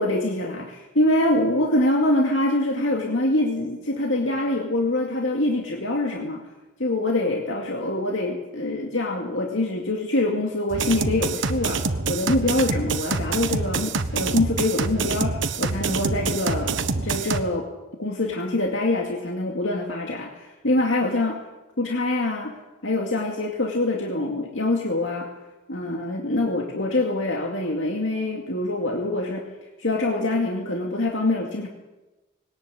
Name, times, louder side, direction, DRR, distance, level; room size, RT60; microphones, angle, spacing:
voice 1, 0.0-6.4 6.8-17.7 18.0-21.4 21.8-22.5 22.8-25.3 25.7-29.4 29.8-31.7, left 2 dB, 75° left, 1 dB, 2.3 m, -24 dB
sound 1, 10.7-17.4, right 4 dB, 75° right, 1.2 m, -26 dB
20.5 x 18.5 x 8.3 m, 1.1 s
head